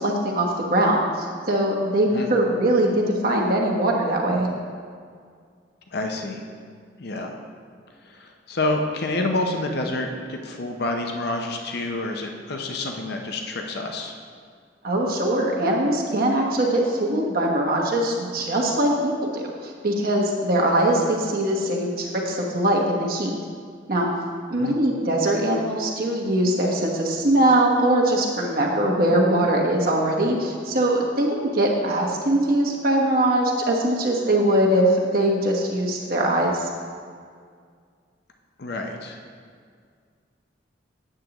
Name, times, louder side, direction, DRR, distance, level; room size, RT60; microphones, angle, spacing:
voice 1, 0.0-4.5 14.8-23.3 23.9-24.1 24.5-36.7, right 1 dB, 55° right, -1 dB, 1.1 m, -22 dB
voice 2, 5.9-6.4 7.0-7.4 8.1-14.1 24.5-24.8 38.6-39.2, left 2 dB, 60° left, 3 dB, 0.7 m, -28 dB
8.9 x 7.6 x 3.0 m, 2.1 s
head